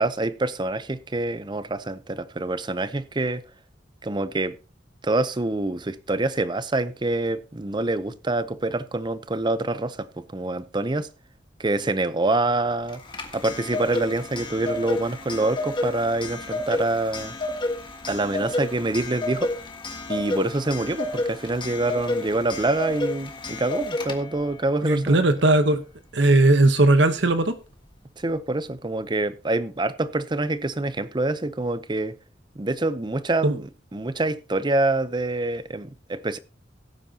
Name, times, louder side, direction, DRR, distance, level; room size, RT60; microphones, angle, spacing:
voice 1, 0.0-3.4 4.0-4.6 5.0-11.1 11.6-13.0 13.3-17.4 18.1-19.5 20.1-25.2 28.2-32.2 32.6-36.4, right 2 dB, 25° right, 0.6 m, -26 dB
Clock, 12.9-24.5, left 2 dB, 25° left, 1.5 m, -30 dB
voice 2, 24.8-25.8 26.1-27.5 33.4-33.5, right 2 dB, 65° right, 1.0 m, -18 dB
17.0 x 9.1 x 2.8 m
head